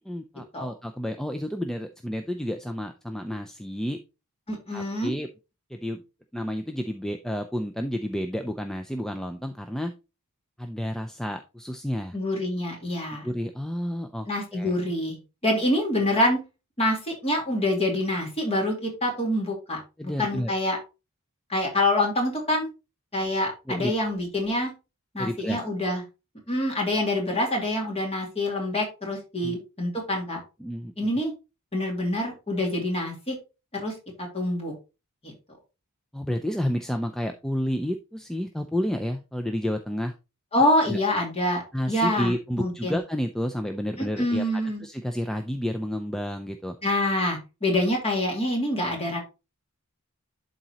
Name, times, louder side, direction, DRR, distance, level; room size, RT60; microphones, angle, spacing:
voice 1, 0.1-4.0 4.7-5.3 5.7-6.0 6.3-9.9 10.6-12.2 13.2-14.3 14.5-14.7 20.0-20.5 23.7-23.9 25.2-25.6 29.4-29.6 30.6-31.1 36.1-40.1 40.9-41.0 41.7-44.4 44.8-46.8, equal, ahead, 5 dB, 0.4 m, -30 dB
voice 2, 4.5-5.1 12.1-13.3 14.3-15.2 15.4-16.4 16.8-19.8 20.2-20.8 21.5-22.7 23.1-24.7 25.1-26.0 26.5-30.4 31.0-31.3 31.7-33.4 33.7-33.9 34.2-34.7 35.2-35.3 40.5-41.6 41.9-43.0 44.0-44.8 46.8-49.2, left 1 dB, 25° left, 1 dB, 2.4 m, -26 dB
11.5 x 4.0 x 2.9 m, 0.28 s
head